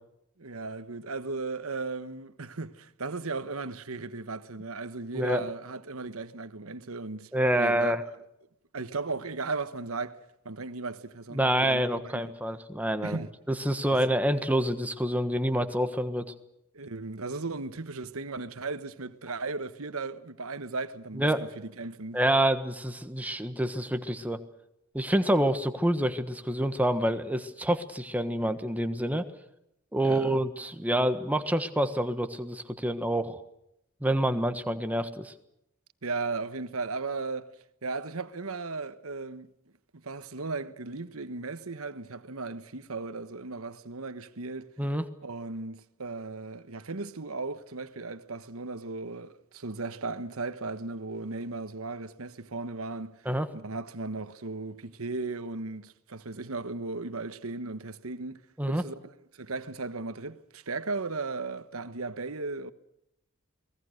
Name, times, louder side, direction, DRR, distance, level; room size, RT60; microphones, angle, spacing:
voice 1, 0.4-7.3 7.6-8.0 8.7-12.3 13.0-13.3 16.7-22.2 30.0-30.4 36.0-37.6 37.8-39.5 39.9-44.7 45.2-53.3 53.5-58.4 58.7-59.0 59.4-62.7, right 3 dB, 80° right, 1.3 m, -36 dB
voice 2, 7.3-8.0 11.3-13.2 13.5-16.2 21.1-21.5 22.1-24.4 24.9-29.3 29.9-33.4 34.0-35.3 44.8-45.0 53.2-53.5 58.6-58.8, right 1 dB, 5° right, 1.4 m, -27 dB
29.5 x 20.0 x 6.6 m
head